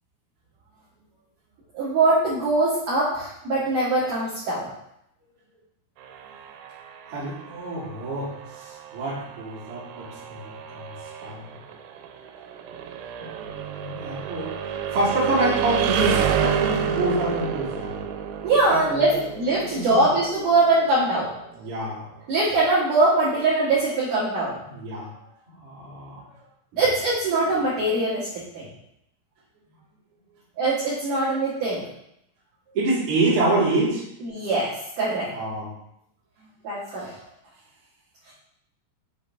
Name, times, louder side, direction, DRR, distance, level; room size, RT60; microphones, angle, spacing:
voice 1, 1.7-4.7 18.4-21.3 22.3-24.6 26.7-28.7 30.6-31.8 34.2-34.7 35.0-35.3 36.6-37.1, right 2 dB, 65° right, -9 dB, 2.1 m, -22 dB
sound 1, 6.0-21.8, right 7 dB, 85° right, 3.2 m, -30 dB
voice 2, 7.1-10.9 11.2-11.4 13.2-14.6 14.9-17.9 18.7-19.2 19.7-20.1 21.6-22.1 24.7-25.1 25.6-26.2 32.7-34.0 35.3-35.7 37.0-37.1, right 2 dB, 50° right, -8 dB, 1.8 m, -27 dB
7.3 x 5.3 x 2.7 m, 0.78 s
omnidirectional pair, 5.9 m